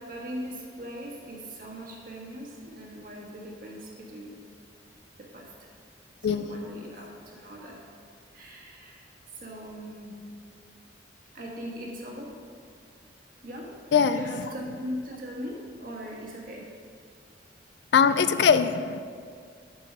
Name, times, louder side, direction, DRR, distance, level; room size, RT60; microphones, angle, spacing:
voice 1, 0.1-4.3 5.3-5.4 6.3-7.8 8.3-9.0 9.3-10.2 11.3-12.3 13.4-13.7 14.1-16.6, equal, 50° right, -2 dB, 1.5 m, -39 dB
voice 2, 6.2-6.8 13.9-14.2 17.9-19.0, left 6 dB, 60° left, 12 dB, 0.3 m, -22 dB
9.0 x 4.7 x 5.4 m, 2.1 s
head